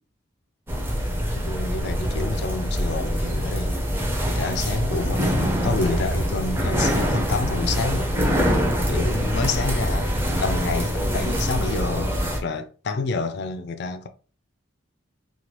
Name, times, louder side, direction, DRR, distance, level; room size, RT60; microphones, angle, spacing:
sound 1, 0.7-12.4, equal, 10° right, 0.4 m, -24 dB
voice 1, 1.4-3.7 4.3-8.1 8.9-12.1 12.4-14.1, left 4 dB, 55° left, 0.3 m, -28 dB
3.0 x 2.2 x 2.9 m
head